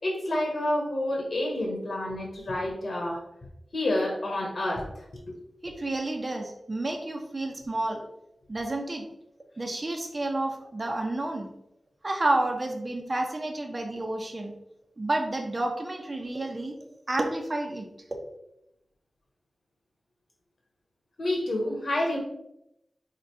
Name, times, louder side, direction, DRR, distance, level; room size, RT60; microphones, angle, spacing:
voice 1, 0.0-3.2 3.7-4.8 21.2-22.2, left 1 dB, 70° left, -1 dB, 1.5 m, -28 dB
voice 2, 5.6-8.0 8.5-9.0 9.6-11.5 12.0-14.5 15.0-16.7 17.1-17.9, right 2 dB, 35° right, 2 dB, 1.0 m, -30 dB
5.0 x 4.3 x 4.8 m, 0.83 s
wide cardioid pair, 75°, 0 cm